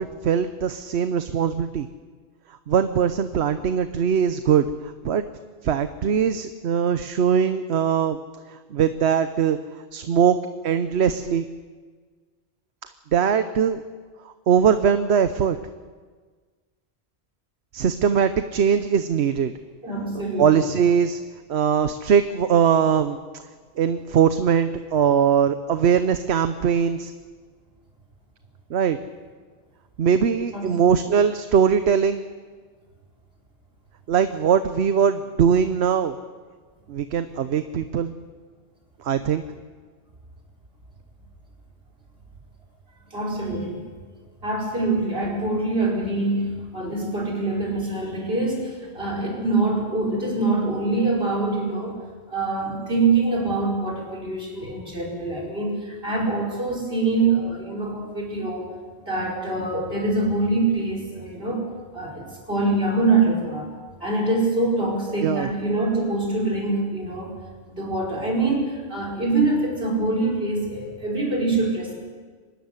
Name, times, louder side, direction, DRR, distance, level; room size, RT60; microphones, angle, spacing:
voice 1, 0.0-1.9 2.7-5.2 5.6-8.2 8.5-9.6 9.9-10.4 10.6-11.4 13.1-13.8 14.2-15.6 17.7-19.5 20.4-21.2 21.5-23.2 23.8-27.1 28.7-29.0 30.0-32.2 34.1-36.2 36.9-38.1 39.0-39.4 65.2-65.5, right 7 dB, 80° right, 10 dB, 1.0 m, -21 dB
voice 2, 19.8-20.6 30.5-31.0 43.1-43.8 44.4-52.0 52.3-58.7 59.0-63.7 64.0-67.4 67.7-72.0, right 3 dB, 65° right, 0 dB, 5.2 m, -24 dB
24.0 x 13.0 x 9.6 m, 1.5 s
omnidirectional pair, 1.1 m